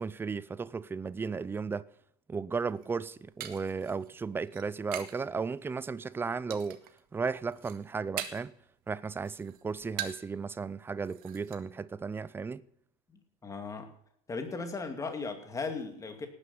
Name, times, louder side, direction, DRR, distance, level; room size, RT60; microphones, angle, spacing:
voice 1, 0.0-1.9 2.3-6.8 7.1-8.5 8.9-12.6, right 5 dB, 10° right, 0.4 m, -35 dB
sound 1, 2.7-5.3 5.6-6.1 6.5-7.0 7.3-8.6 8.9-10.4 10.7-10.8 11.0-11.6, right 12 dB, 50° right, 1.8 m, -42 dB
voice 2, 13.4-13.9 14.3-16.3, left 4 dB, 15° left, 2.3 m, -36 dB
18.0 x 9.8 x 5.6 m
supercardioid pair, 145°, 20 cm